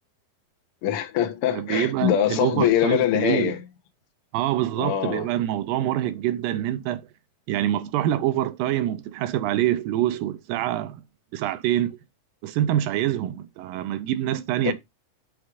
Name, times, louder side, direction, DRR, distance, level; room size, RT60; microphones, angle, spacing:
voice 1, 0.8-3.6 4.8-5.3 14.6-14.7, left 11 dB, 75° left, 1.3 m, -23 dB
voice 2, 1.5-3.5 4.3-7.0 7.5-11.0 11.3-12.0 12.4-14.7, right 12 dB, 90° right, 2.4 m, -25 dB
6.3 x 3.6 x 4.7 m
omnidirectional pair, 4.0 m